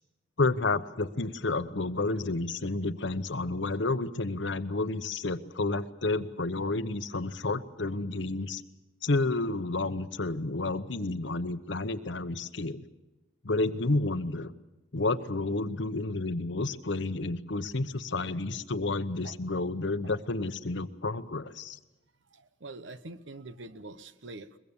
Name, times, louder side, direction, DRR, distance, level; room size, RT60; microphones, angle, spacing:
voice 1, 0.4-8.6 9.0-12.8 13.4-14.5 14.9-21.8, left 2 dB, 65° left, 12 dB, 0.9 m, -30 dB
voice 2, 22.3-24.6, right 2 dB, 70° right, 13 dB, 1.0 m, -44 dB
22.5 x 22.0 x 7.1 m, 1.0 s
head